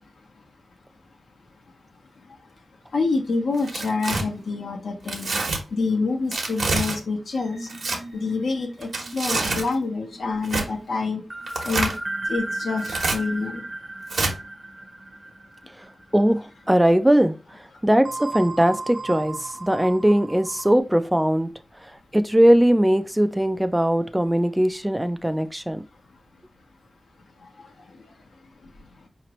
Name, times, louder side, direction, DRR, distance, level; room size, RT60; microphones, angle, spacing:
voice 1, 2.9-5.3 5.7-7.7 8.1-11.2 11.6-11.9 12.3-13.6, left 4 dB, 85° left, 0.9 m, -27 dB
Tearing, 3.5-4.2 5.1-5.6 6.3-7.0 7.7-8.0 8.8-9.7 10.4-10.7 11.5-12.0 12.8-13.2 14.1-14.3, right 3 dB, 75° right, 1.1 m, -26 dB
sound 1, 7.3-16.2 16.6-16.8 18.0-20.8, right 2 dB, 40° right, 0.8 m, -36 dB
voice 2, 16.1-17.3 17.8-21.5 22.1-25.8, right 1 dB, 5° right, 0.3 m, -20 dB
4.9 x 3.0 x 3.0 m
wide cardioid pair, 110°, 0 cm